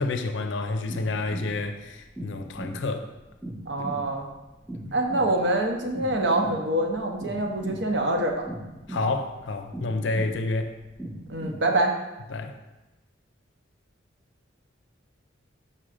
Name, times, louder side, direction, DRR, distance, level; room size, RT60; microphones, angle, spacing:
voice 1, 0.0-3.1 8.9-10.7 12.3-12.5, left 3 dB, 70° left, 0.5 m, -29 dB
sound 1, 0.9-11.6, right 1 dB, 5° right, 0.4 m, -39 dB
voice 2, 3.7-4.3 4.9-8.4 11.3-11.9, right 1 dB, 60° right, 0.8 m, -25 dB
5.6 x 3.7 x 4.9 m
head